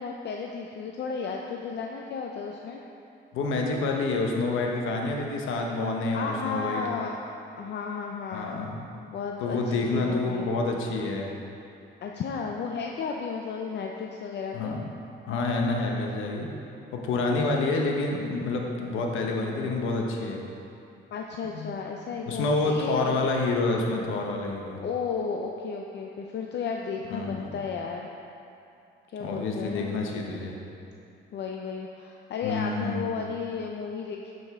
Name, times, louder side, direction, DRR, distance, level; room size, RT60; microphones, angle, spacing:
voice 1, 0.0-2.8 6.1-7.1 7.6-9.6 9.9-10.5 12.0-14.8 21.1-23.3 24.8-28.1 29.1-30.0 31.3-34.3, left 5 dB, 60° left, 1 dB, 0.5 m, -33 dB
voice 2, 3.3-6.8 8.3-8.8 9.4-11.3 14.5-14.9 15.3-16.5 16.9-20.4 21.5-21.7 22.3-24.8 27.1-27.5 29.2-30.6 32.4-33.0, left 3 dB, 85° left, 1 dB, 1.0 m, -28 dB
9.3 x 5.3 x 3.6 m, 2.7 s
cardioid pair, 90°, 20 cm